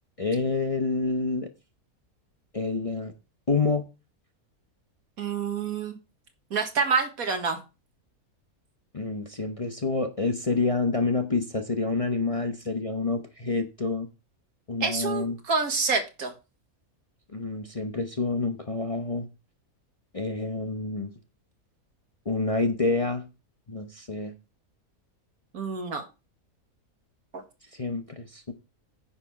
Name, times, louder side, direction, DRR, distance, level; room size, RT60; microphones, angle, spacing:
voice 1, 0.2-1.5 2.5-3.1 3.5-3.9 8.9-14.1 14.7-15.4 17.3-19.3 20.1-21.1 22.2-23.2 23.7-24.3 27.7-28.5, left 3 dB, 30° left, 0.8 m, -28 dB
voice 2, 5.2-6.0 6.5-7.6 14.8-16.3 25.5-26.0 27.3-27.4, right 5 dB, 75° right, 2.1 m, -27 dB
9.8 x 6.6 x 4.7 m
omnidirectional pair, 1.5 m